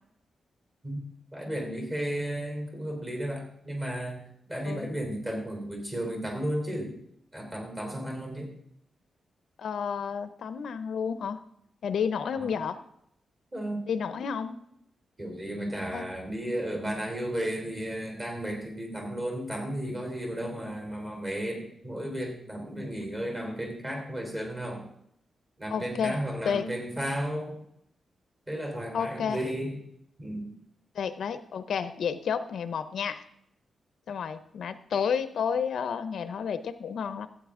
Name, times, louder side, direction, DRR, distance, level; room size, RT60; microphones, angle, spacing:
voice 1, 1.3-6.9 7.3-8.5 12.3-12.5 13.5-13.8 15.2-24.9 25.6-27.6 28.5-29.8 30.2-30.5, right 1 dB, 25° right, 1 dB, 3.2 m, -34 dB
voice 2, 9.6-11.4 11.8-12.8 13.9-14.6 15.9-16.1 25.7-26.2 26.4-26.7 28.9-29.4 30.9-33.2 34.1-37.3, left 7 dB, 70° left, 12 dB, 0.6 m, -31 dB
14.5 x 8.3 x 3.7 m, 0.74 s
wide cardioid pair, 145°, 0 cm